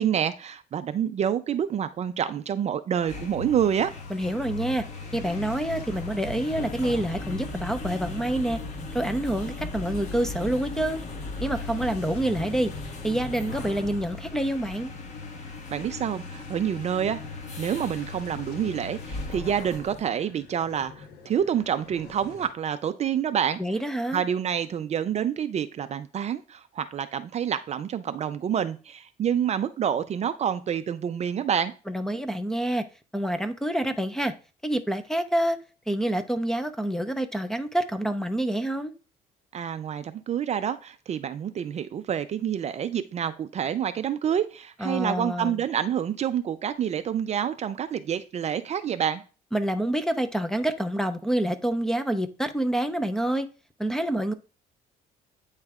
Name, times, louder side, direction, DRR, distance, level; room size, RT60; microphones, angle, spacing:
voice 1, 0.0-3.9 15.7-17.2 17.6-23.6 24.1-31.7 39.5-49.2, right 9 dB, 40° right, 0.5 m, -28 dB
sound 1, 2.9-20.1, left 3 dB, 45° left, 1.4 m, -37 dB
sound 2, 3.8-22.5, left 5 dB, 75° left, 1.3 m, -49 dB
voice 2, 4.1-4.8 5.1-8.6 8.9-11.0 11.4-12.7 13.0-14.9 23.6-24.2 31.9-32.8 33.1-34.3 34.6-35.6 35.9-38.9 44.8-45.6 49.5-53.5 53.8-54.3, right 1 dB, 5° left, 0.6 m, -27 dB
8.9 x 3.2 x 3.6 m
cardioid pair, 110°, 17 cm